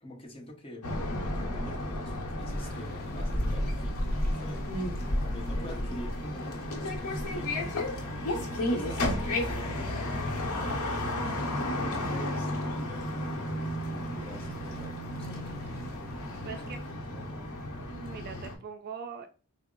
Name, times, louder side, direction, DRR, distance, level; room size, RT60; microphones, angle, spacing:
voice 1, 0.0-0.9 1.3-4.7 5.2-15.4 16.5-17.6, equal, 25° left, 0.9 m, -47 dB
sound 1, 0.8-18.6, left 1 dB, 85° left, 0.8 m, -32 dB
sound 2, 2.5-16.9, equal, 45° left, 0.7 m, -49 dB
voice 2, 16.4-16.8 17.9-19.3, right 6 dB, 45° right, 0.3 m, -41 dB
3.6 x 2.0 x 3.7 m
head